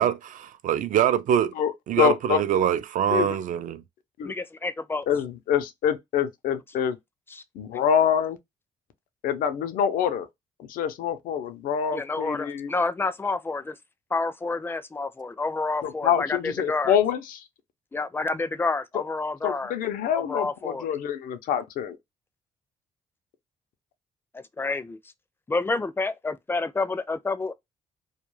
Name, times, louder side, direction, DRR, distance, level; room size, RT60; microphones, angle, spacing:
voice 1, 0.0-1.5 1.9-3.8, right 9 dB, 70° right, 0.4 m, -24 dB
voice 2, 2.0-2.4 3.1-3.4 4.2-4.3 5.1-7.0 7.5-8.4 9.2-10.3 10.6-12.7 15.8-17.4 19.4-22.0, left 8 dB, 90° left, 0.5 m, -25 dB
voice 3, 4.2-5.1 7.3-7.4 11.9-13.8 14.1-17.0 17.9-19.7 20.1-20.9 24.3-25.0 25.5-27.5, left 3 dB, 15° left, 0.4 m, -29 dB
2.3 x 2.2 x 3.1 m
cardioid pair, 90°, 14 cm